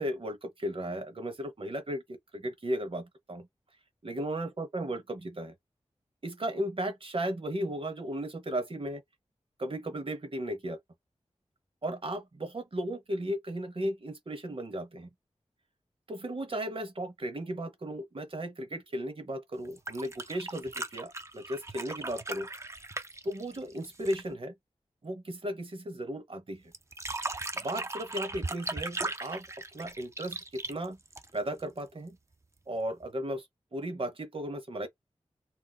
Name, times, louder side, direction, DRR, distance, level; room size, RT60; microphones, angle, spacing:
voice 1, 0.0-3.5 4.0-5.5 6.2-9.0 9.6-10.8 11.8-15.1 16.1-22.5 23.2-24.5 25.0-26.7 27.5-29.5 29.7-31.0 31.3-32.2 32.7-33.5 33.7-34.9, right 1 dB, 50° right, 0.9 m, -35 dB
sound 1, 19.6-24.3 26.7-31.6 33.0-33.1, right 2 dB, 25° right, 0.4 m, -38 dB
2.5 x 2.1 x 3.9 m
wide cardioid pair, 60°, 12 cm